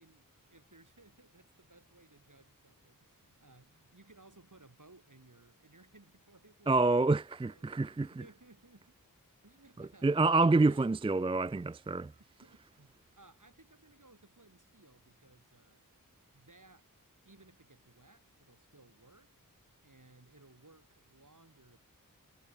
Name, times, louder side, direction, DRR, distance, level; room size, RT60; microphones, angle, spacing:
voice 1, 0.0-9.0 9.4-10.1 10.4-10.9 12.2-16.9 17.2-19.3 19.8-21.8, right 2 dB, 60° right, 6.2 m, -61 dB
voice 2, 6.7-8.1 9.8-12.1, right 3 dB, 15° right, 0.4 m, -27 dB
wide cardioid pair, 40°, 35 cm